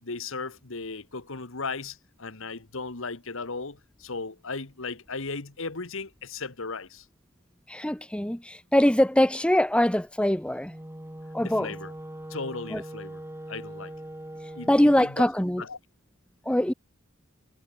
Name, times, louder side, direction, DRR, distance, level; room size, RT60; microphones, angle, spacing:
voice 1, 0.0-7.1 11.4-11.9 12.3-13.2 13.5-13.9 14.5-15.3 15.6-15.8, left 4 dB, 70° left, 1.7 m, -36 dB
voice 2, 7.7-10.7 11.3-11.7 12.7-12.8 14.7-15.6 16.5-16.7, left 1 dB, 5° left, 1.0 m, -23 dB
Wind instrument woodwind instrument, 10.5-15.1, right 1 dB, 10° right, 1.5 m, -41 dB
head